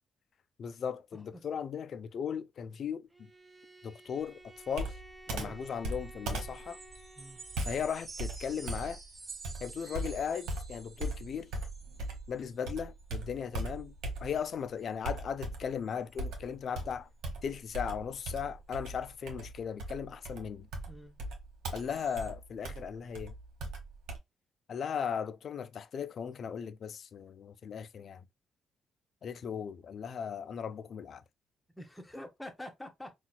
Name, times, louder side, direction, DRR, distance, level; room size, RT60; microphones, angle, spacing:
voice 1, 0.6-3.3 3.8-4.4 4.7-5.0 5.3-6.8 7.6-9.0 9.6-11.5 12.3-13.9 14.2-17.1 17.4-20.7 21.7-23.3 24.7-28.2 29.2-31.2, left 7 dB, 55° left, 0.3 m, -37 dB
voice 2, 1.1-1.4 5.3-5.6 7.2-7.4 20.9-21.2 31.7-33.1, left 1 dB, 10° left, 0.8 m, -46 dB
Bowed string instrument, 3.1-7.9, right 1 dB, 10° right, 0.5 m, -54 dB
Computer keyboard, 4.7-12.3 12.7-14.6 15.0-15.8 16.2-24.2, right 1 dB, 85° right, 0.8 m, -39 dB
sound 1, 6.0-12.7 13.0-13.3 13.7-13.8 14.2-14.5 14.8-14.9 15.4-15.5 15.8-16.2 21.8-22.3, right 3 dB, 35° right, 1.0 m, -50 dB
4.0 x 2.3 x 2.2 m
cardioid pair, 90°, 0 cm